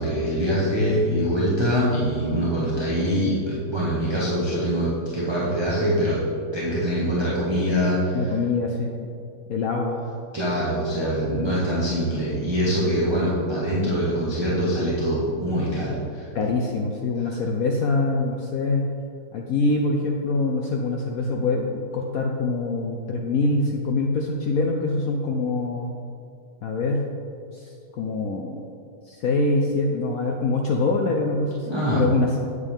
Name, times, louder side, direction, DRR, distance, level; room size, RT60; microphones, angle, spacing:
voice 1, 0.0-6.2 6.5-8.3 10.3-16.3 31.6-32.0, equal, 15° right, -8 dB, 1.1 m, -24 dB
voice 2, 8.1-9.1 9.5-10.0 16.3-18.9 19.3-25.9 26.6-27.0 27.5-28.6 29.1-32.4, left 3 dB, 85° left, 1 dB, 0.7 m, -24 dB
9.1 x 8.0 x 3.6 m, 2.4 s
omnidirectional pair, 2.3 m